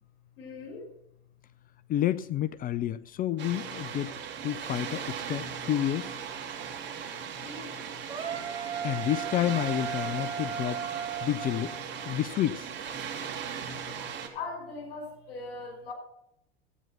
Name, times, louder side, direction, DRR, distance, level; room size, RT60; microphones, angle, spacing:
voice 1, 0.4-0.9 7.4-7.8 14.3-15.9, left 3 dB, 65° left, 5.6 m, -40 dB
voice 2, 1.9-4.1 4.4-6.1 8.8-10.8 11.2-11.7 12.0-12.7, left 12 dB, 30° left, 0.5 m, -29 dB
Water, 3.4-14.3, right 7 dB, 35° right, 3.1 m, -38 dB
sound 1, 8.1-12.2, right 7 dB, 15° right, 2.5 m, -36 dB
15.0 x 9.1 x 5.9 m
hypercardioid pair, 90°, 31 cm